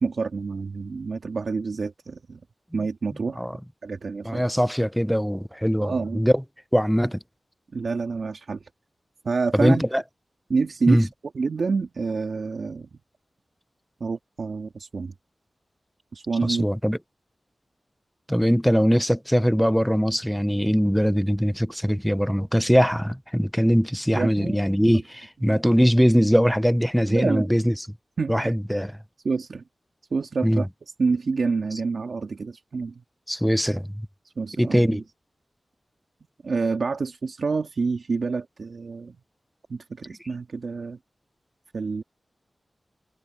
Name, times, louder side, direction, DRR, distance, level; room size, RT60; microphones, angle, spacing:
voice 1, 0.0-2.4 2.7-3.4 3.8-4.5 5.8-6.3 7.7-8.7 9.2-9.8 10.5-11.1 11.3-12.9 14.0-15.1 16.1-16.7 24.1-25.0 27.1-27.5 28.2-28.6 29.2-29.6 30.1-30.7 31.0-32.9 34.2-35.0 36.4-39.2 39.7-41.0 41.7-42.0, right 4 dB, 75° right, 1.9 m, -27 dB
voice 2, 4.2-6.4 6.7-7.2 9.5-10.0 10.9-11.1 16.4-17.0 18.3-27.7 28.3-28.9 30.4-30.6 33.3-34.1 34.6-35.0, equal, ahead, 0.6 m, -21 dB
wide cardioid pair, 80°, 0 cm